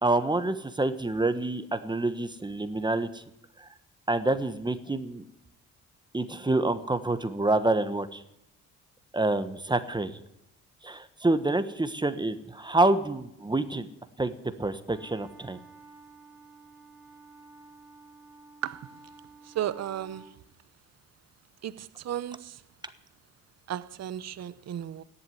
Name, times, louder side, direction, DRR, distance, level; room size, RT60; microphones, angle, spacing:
voice 1, 0.0-3.2 4.1-5.2 6.1-8.2 9.1-10.1 10.8-13.9 14.2-14.3 14.6-15.6, right 2 dB, 15° right, 1.2 m, -27 dB
sound 1, 14.8-20.3, right 3 dB, 80° left, 5.0 m, -52 dB
voice 2, 19.6-20.3 21.6-22.5 23.7-25.0, right 11 dB, 60° right, 0.8 m, -34 dB
14.0 x 11.0 x 9.6 m
cardioid pair, 90°, 30 cm